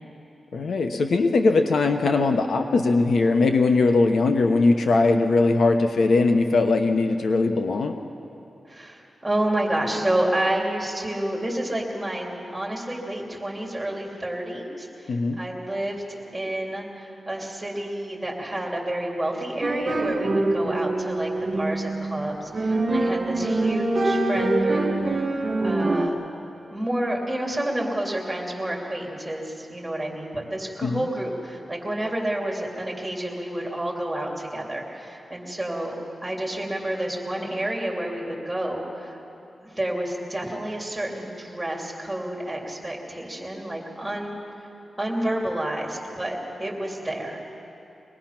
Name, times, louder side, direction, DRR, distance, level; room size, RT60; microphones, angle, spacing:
voice 1, 0.5-8.0 15.1-15.4 30.8-31.0, left 3 dB, 65° left, 5 dB, 0.9 m, -20 dB
voice 2, 8.7-16.0 16.3-24.9 25.6-26.2 26.7-36.0 36.2-39.2 39.6-44.4 45.0-47.5, right 1 dB, 10° right, -2 dB, 3.1 m, -29 dB
sound 1, 19.6-26.1, right 2 dB, 35° right, 1.2 m, -24 dB
23.5 x 19.5 x 5.9 m, 2.8 s
wide cardioid pair, 155°, 0 cm